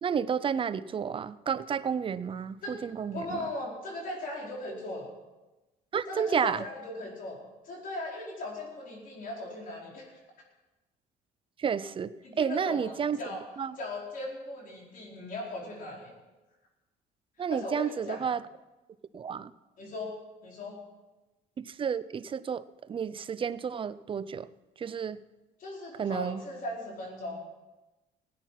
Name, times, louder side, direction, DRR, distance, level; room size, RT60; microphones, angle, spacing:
voice 1, 0.0-3.4 5.9-6.6 11.6-13.2 13.6-13.8 17.4-18.4 19.1-19.5 21.6-22.6 22.9-24.5 24.8-25.2 26.0-26.4, right 7 dB, 30° right, 16 dB, 0.5 m, -31 dB
voice 2, 3.1-5.1 6.1-7.4 7.6-10.1 12.2-13.4 13.8-16.1 17.5-18.2 19.8-20.8 25.6-27.4, left 1 dB, 55° left, -2 dB, 4.7 m, -38 dB
17.0 x 9.2 x 5.8 m, 1.1 s
cardioid pair, 110°, 17 cm